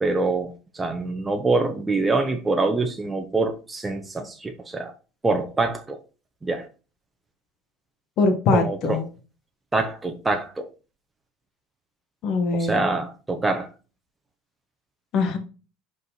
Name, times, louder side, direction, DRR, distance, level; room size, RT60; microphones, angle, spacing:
voice 1, 0.0-4.9 5.2-6.0 6.4-6.7 8.5-9.1 9.7-10.7 12.5-13.7, right 3 dB, 15° right, 1.1 m, -25 dB
voice 2, 8.2-9.0 12.2-12.8 15.1-15.4, left 3 dB, 55° left, 1.7 m, -22 dB
5.3 x 4.8 x 4.1 m
supercardioid pair, 100°, 0 cm